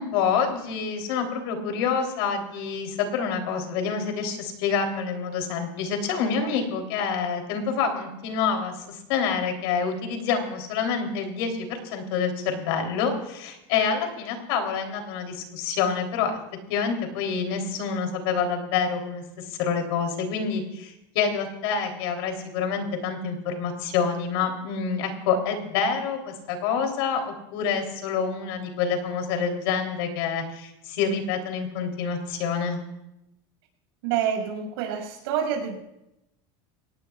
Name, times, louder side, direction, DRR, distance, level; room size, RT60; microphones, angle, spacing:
voice 1, 0.0-16.4 16.7-32.8, left 6 dB, 75° left, 4 dB, 3.4 m, -27 dB
voice 2, 34.0-35.8, right 8 dB, 80° right, 1 dB, 6.3 m, -27 dB
24.0 x 18.5 x 2.4 m, 0.88 s
supercardioid pair, 150°, 13 cm